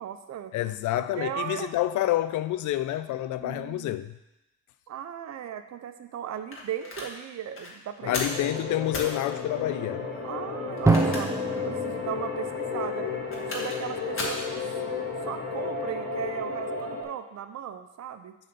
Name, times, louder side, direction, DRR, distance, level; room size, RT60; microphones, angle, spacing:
voice 1, 0.0-0.5 0.9-1.8 3.4-4.0 4.9-8.2 10.2-13.1 13.5-14.6 15.2-18.4, right 9 dB, 60° right, 9 dB, 0.7 m, -37 dB
voice 2, 0.5-4.1 8.1-10.0, left 13 dB, 75° left, 12 dB, 0.5 m, -28 dB
sound 1, 6.5-7.1 7.5-7.7 8.1-8.4 8.9-9.1 10.7-11.5 11.9-12.0 13.1-13.8 14.2-14.4, left 2 dB, 45° left, 1.9 m, -34 dB
sound 2, 8.0-17.0, left 5 dB, 60° left, 2.4 m, -33 dB
Drum, 10.8-13.6, right 3 dB, 10° right, 0.7 m, -27 dB
7.5 x 4.0 x 6.8 m, 0.94 s
cardioid pair, 90°, 30 cm